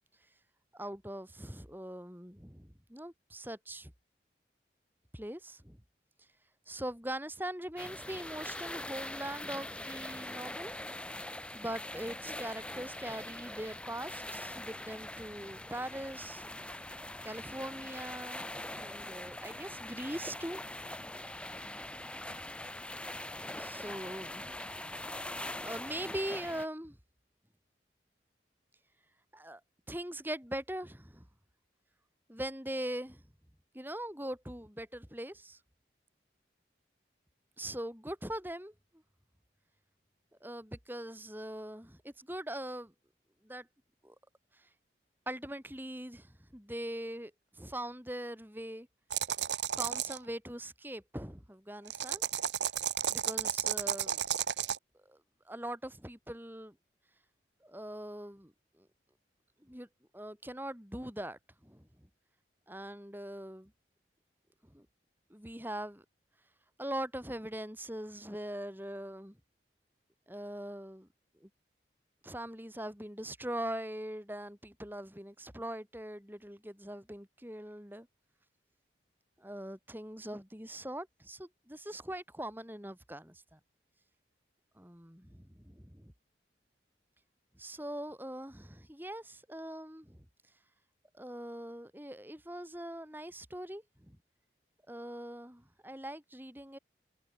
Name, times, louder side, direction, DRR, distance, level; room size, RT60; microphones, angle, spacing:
voice 1, 0.7-3.9 5.1-5.8 6.7-10.7 11.5-16.5 17.2-20.6 23.3-24.5 25.6-27.0 29.3-29.6 29.9-31.3 32.3-33.2 33.7-35.6 37.6-38.7 40.4-42.9 43.4-43.7 44.0-44.2 44.5-44.7 45.3-48.9 49.7-52.2 53.1-54.2 55.1-55.2 55.5-56.8 57.6-58.9 59.6-59.9 60.1-62.1 62.7-63.7 64.6-64.9 65.3-66.0 66.8-69.4 70.3-71.1 71.4-71.5 72.2-78.1 79.4-83.6 84.8-86.1 87.6-90.3 91.1-94.2 94.9-96.8, right 1 dB, 10° right, 5.3 m, -42 dB
sound 1, 7.8-26.7, left 1 dB, 5° left, 2.8 m, -42 dB
sound 2, 49.1-50.2 51.9-54.8, right 9 dB, 75° right, 1.1 m, -32 dB
head